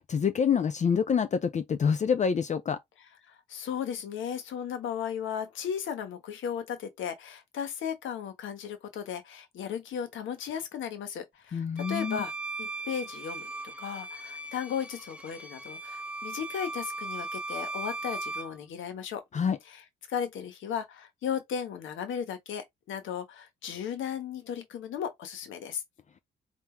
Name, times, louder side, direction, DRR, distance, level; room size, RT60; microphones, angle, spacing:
voice 1, 0.1-2.8 11.5-12.2 19.3-19.6, left 6 dB, 35° left, 0.5 m, -26 dB
voice 2, 3.3-12.3 12.6-13.4 13.8-19.2 19.6-19.8 20.1-25.8, left 8 dB, 75° left, 1.3 m, -35 dB
Bowed string instrument, 11.8-18.6, right 2 dB, 5° right, 0.9 m, -38 dB
3.8 x 2.8 x 4.5 m
cardioid pair, 90°, 20 cm